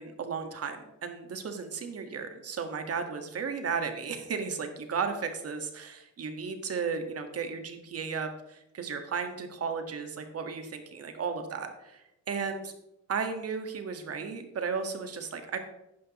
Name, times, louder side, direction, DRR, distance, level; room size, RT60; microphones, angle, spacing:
voice 1, 0.0-12.7 13.1-15.6, right 5 dB, 50° right, 6 dB, 1.7 m, -34 dB
11.0 x 9.4 x 3.1 m, 0.90 s
cardioid pair, 90°, 30 cm